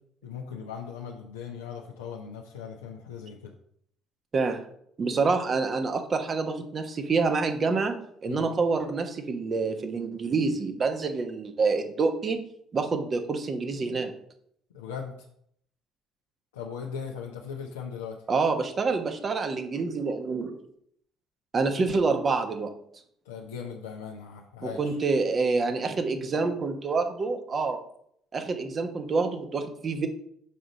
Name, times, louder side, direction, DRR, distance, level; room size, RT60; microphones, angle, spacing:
voice 1, 0.2-3.5 8.3-8.5 14.7-15.3 16.5-18.2 23.2-25.0, left 7 dB, 80° left, -1 dB, 0.7 m, -38 dB
voice 2, 5.0-12.4 12.7-14.1 18.3-20.6 21.5-22.7 24.6-27.8 28.3-30.1, right 4 dB, 40° right, 6 dB, 1.1 m, -27 dB
6.8 x 5.0 x 4.0 m, 0.68 s
hypercardioid pair, 55°, 0 cm